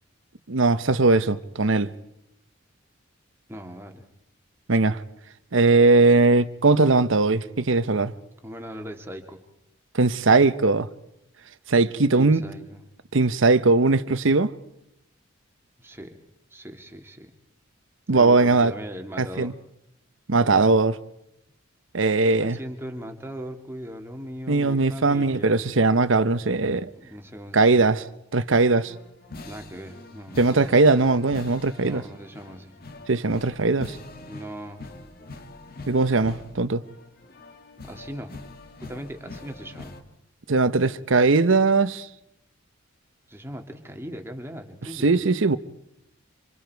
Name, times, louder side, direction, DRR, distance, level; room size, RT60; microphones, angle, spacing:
voice 1, 0.5-1.9 4.7-5.0 5.5-8.1 9.9-10.9 11.7-12.4 13.1-14.5 18.1-18.7 19.2-19.5 20.3-21.0 21.9-22.6 24.5-26.9 27.5-28.0 28.3-28.9 30.4-32.0 33.1-34.0 35.9-36.8 40.5-42.1 45.0-45.6, right 3 dB, 70° right, 0.9 m, -20 dB
voice 2, 3.5-4.1 8.4-9.4 12.1-12.8 15.8-16.2 16.5-17.3 18.1-19.5 22.3-25.6 26.9-27.9 29.4-30.7 31.8-32.8 34.3-34.8 37.8-38.4 38.8-40.0 43.3-45.2, equal, 10° right, 2.0 m, -39 dB
sound 1, 28.6-40.0, left 2 dB, 45° left, 1.8 m, -43 dB
27.0 x 26.5 x 4.6 m
head